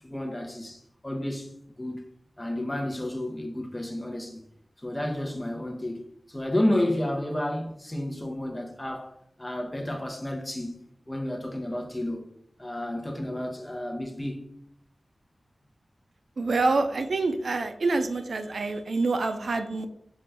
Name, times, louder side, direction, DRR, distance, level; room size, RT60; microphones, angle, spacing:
voice 1, 0.0-1.5 1.8-2.1 2.4-4.4 4.8-6.0 6.3-12.2 12.6-14.5, left 1 dB, 15° left, 0.8 m, -31 dB
voice 2, 16.4-19.9, right 3 dB, 80° right, 0.4 m, -26 dB
5.5 x 2.5 x 3.3 m
wide cardioid pair, 95°, 0 cm